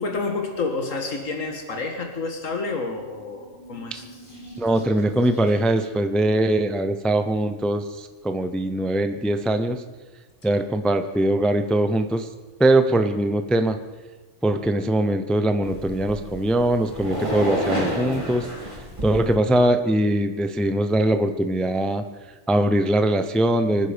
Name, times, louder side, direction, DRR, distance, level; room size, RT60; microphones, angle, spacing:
voice 1, 0.0-4.0, left 3 dB, 85° left, 4 dB, 2.0 m, -29 dB
sound 1, 3.2-6.2, right 1 dB, 40° left, 3.9 m, -45 dB
voice 2, 4.6-9.8 10.4-12.3 12.6-13.8 14.4-18.5 19.0-22.0 22.5-23.9, right 1 dB, ahead, 8 dB, 0.6 m, -21 dB
sound 2, 15.6-19.4, equal, 25° right, 4.2 m, -30 dB
24.5 x 10.0 x 5.2 m, 1.3 s
omnidirectional pair, 1.3 m